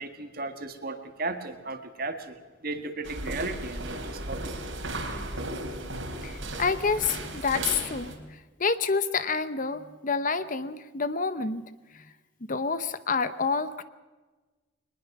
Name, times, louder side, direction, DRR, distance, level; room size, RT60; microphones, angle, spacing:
voice 1, 0.0-2.4 2.6-4.6, right 2 dB, 45° right, 1.8 m, -35 dB
sound 1, 3.0-8.1, right 2 dB, 70° right, 3.5 m, -35 dB
voice 2, 4.9-5.2 6.2-11.6 11.9-12.0 12.5-13.8, left 4 dB, 40° left, 0.8 m, -28 dB
23.0 x 20.0 x 6.0 m
head